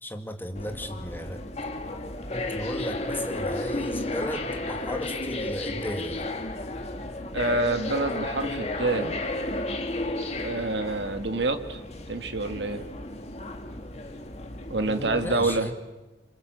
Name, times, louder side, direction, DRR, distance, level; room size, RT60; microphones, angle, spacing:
voice 1, 0.0-1.4 2.3-6.3 14.8-15.7, equal, 10° left, 5 dB, 2.0 m, -35 dB
sound 1, 0.6-15.6, left 2 dB, 40° left, 1.9 m, -33 dB
voice 2, 7.3-9.3 10.4-11.8 12.1-12.9 14.7-15.7, right 2 dB, 80° right, 7 dB, 1.6 m, -27 dB
27.5 x 25.5 x 7.9 m, 1.1 s
head